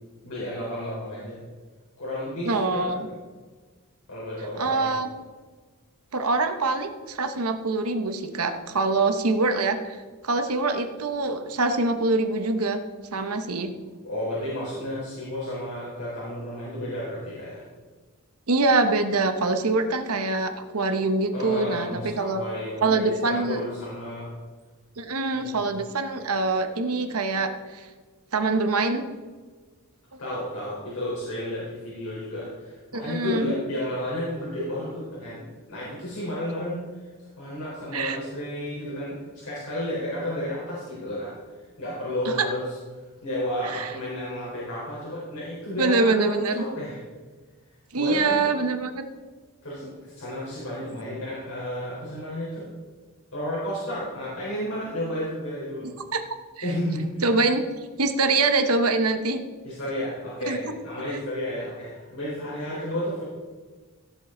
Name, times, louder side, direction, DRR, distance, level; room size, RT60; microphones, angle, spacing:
voice 1, 0.2-1.4 2.0-2.8 4.1-4.9 14.0-17.6 21.3-24.3 25.3-25.6 30.2-36.8 37.2-41.3 41.8-42.7 43.2-47.0 48.0-48.4 49.6-52.7 53.3-55.9 56.6-57.3 59.6-63.2, left 1 dB, 70° left, -8 dB, 4.1 m, -32 dB
voice 2, 2.4-3.0 4.6-5.1 6.1-10.0 10.2-12.8 13.1-13.7 18.5-22.4 22.8-23.6 25.0-27.9 28.3-29.0 32.9-33.5 37.9-38.2 42.2-42.5 43.6-43.9 45.8-46.6 47.9-49.0 50.8-50.9 56.1-56.2 56.6-56.7 57.2-57.6 58.0-59.4 60.4-60.6, right 3 dB, 80° right, 7 dB, 1.1 m, -24 dB
17.0 x 7.6 x 3.9 m, 1.4 s
head